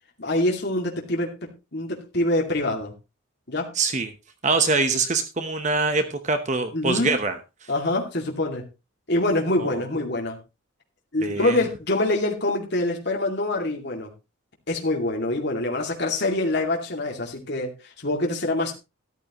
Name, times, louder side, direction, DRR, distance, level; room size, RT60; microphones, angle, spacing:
voice 1, 0.2-2.9 3.5-3.7 6.7-7.1 7.7-8.6 9.1-10.4 11.1-14.1 14.7-17.7 18.0-18.8, left 2 dB, 50° left, 1 dB, 2.3 m, -25 dB
voice 2, 3.7-4.1 4.4-7.4 7.6-7.7 9.6-9.8 11.2-11.6, right 3 dB, 35° right, 8 dB, 1.0 m, -24 dB
13.5 x 11.5 x 3.0 m, 0.26 s
head